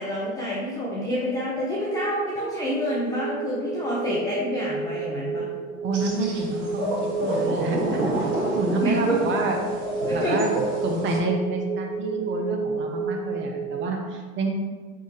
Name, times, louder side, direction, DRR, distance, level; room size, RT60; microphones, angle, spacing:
voice 1, 0.0-5.5 8.8-9.2 10.1-10.4, equal, 10° left, -6 dB, 0.3 m, -27 dB
sound 1, 1.8-13.8, right 4 dB, 85° right, 0.7 m, -31 dB
voice 2, 5.8-6.9 7.2-7.8 8.2-9.6 10.1-10.5 10.8-14.5, right 3 dB, 25° right, 2 dB, 0.6 m, -28 dB
sound 2, 5.9-11.2, right 1 dB, 60° right, 1.4 m, -29 dB
4.5 x 3.6 x 2.8 m, 1.5 s
hypercardioid pair, 100°, 45 cm